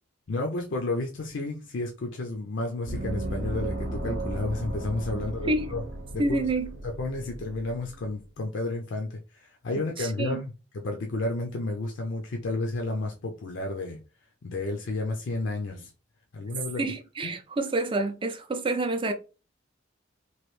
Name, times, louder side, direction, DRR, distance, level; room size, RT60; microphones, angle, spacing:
voice 1, 0.3-5.8 6.1-6.4 6.8-14.0 14.4-15.9 16.3-16.8 17.2-17.3, left 2 dB, 70° left, 0.5 m, -31 dB
Gong, 2.9-8.1, right 1 dB, 75° right, 0.7 m, -35 dB
voice 2, 5.2-5.7 6.2-6.7 10.0-10.4 16.8-19.1, right 2 dB, 25° right, 0.4 m, -28 dB
3.0 x 2.5 x 3.1 m
head